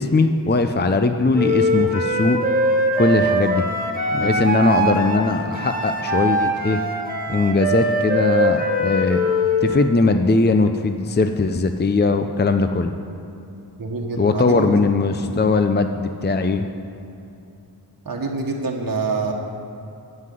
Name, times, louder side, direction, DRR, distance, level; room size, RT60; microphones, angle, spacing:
voice 1, 0.0-2.4 3.0-3.6 4.1-6.8 7.3-9.2 9.6-12.9 14.2-16.7, left 3 dB, 25° left, 7 dB, 0.6 m, -19 dB
Wind instrument woodwind instrument, 1.3-9.7, equal, 20° right, 1.6 m, -22 dB
voice 2, 13.8-14.6 18.0-19.3, right 3 dB, 55° right, 0 dB, 1.3 m, -25 dB
9.7 x 7.7 x 9.2 m, 2.8 s
wide cardioid pair, 70°, 41 cm